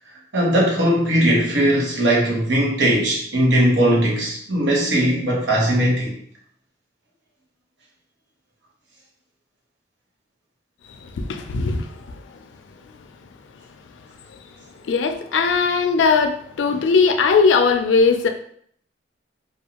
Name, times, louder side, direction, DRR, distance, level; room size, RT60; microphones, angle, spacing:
voice 1, 0.3-6.1, right 1 dB, 75° right, -3 dB, 0.9 m, -19 dB
voice 2, 11.2-12.1 14.9-18.3, left 5 dB, 85° left, 6 dB, 0.3 m, -19 dB
2.5 x 2.3 x 2.8 m, 0.63 s
head